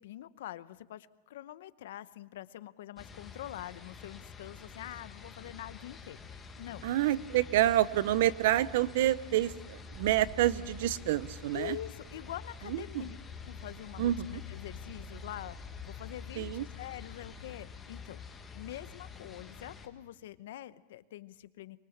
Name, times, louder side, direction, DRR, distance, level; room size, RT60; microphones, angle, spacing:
voice 1, 0.0-6.9 7.2-7.3 11.5-18.2 18.5-21.8, left 13 dB, 65° left, 15 dB, 0.8 m, -45 dB
sound 1, 3.0-19.9, left 5 dB, 10° left, 1.4 m, -47 dB
voice 2, 6.8-11.8 12.7-13.0 14.0-14.4 16.4-16.7, right 13 dB, 55° right, 19 dB, 0.7 m, -28 dB
sound 2, 9.9-12.9, right 3 dB, 15° right, 2.7 m, -52 dB
24.5 x 22.0 x 7.3 m, 1.2 s
supercardioid pair, 180°, 0 cm